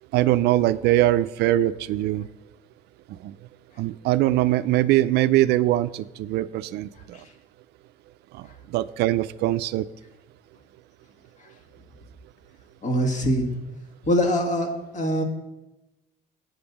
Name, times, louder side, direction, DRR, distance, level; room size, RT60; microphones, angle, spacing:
voice 1, 0.1-2.3 3.2-3.3 3.8-7.2 8.4-8.5 8.7-9.9, right 14 dB, 80° right, 15 dB, 0.4 m, -22 dB
voice 2, 12.8-13.5 14.0-14.7 14.9-15.2, equal, 45° left, 4 dB, 1.7 m, -23 dB
7.9 x 5.3 x 6.9 m, 0.99 s
cardioid pair, 110°, 17 cm